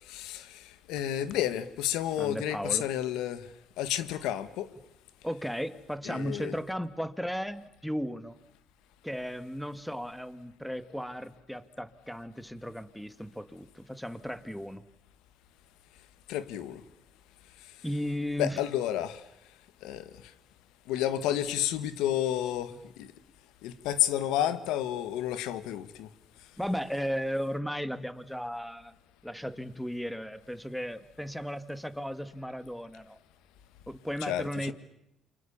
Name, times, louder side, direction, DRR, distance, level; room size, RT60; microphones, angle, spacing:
voice 1, 0.1-3.5 3.8-4.7 6.0-6.5 16.3-16.8 18.4-19.2 19.8-20.1 20.9-23.1 23.6-26.1 34.2-34.7, left 12 dB, 85° left, 14 dB, 1.7 m, -31 dB
voice 2, 2.2-2.9 5.2-8.4 9.0-14.8 17.8-18.6 22.7-22.8 26.6-28.9 29.2-33.2 33.9-34.7, equal, ahead, 13 dB, 1.8 m, -35 dB
29.0 x 24.5 x 7.2 m, 0.84 s
cardioid pair, 90°, 0 cm